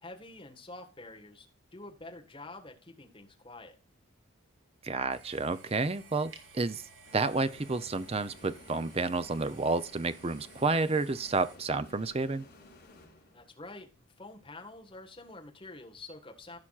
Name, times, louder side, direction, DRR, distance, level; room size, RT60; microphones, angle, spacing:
voice 1, 0.0-1.5 1.7-3.8 13.3-16.6, left 2 dB, 25° left, 1.4 m, -47 dB
voice 2, 4.8-12.5, right 3 dB, 30° right, 0.5 m, -30 dB
sound 1, 5.1-11.6, right 4 dB, 60° right, 1.7 m, -55 dB
sound 2, 7.0-13.7, left 2 dB, 45° left, 4.5 m, -55 dB
15.5 x 5.8 x 2.4 m
head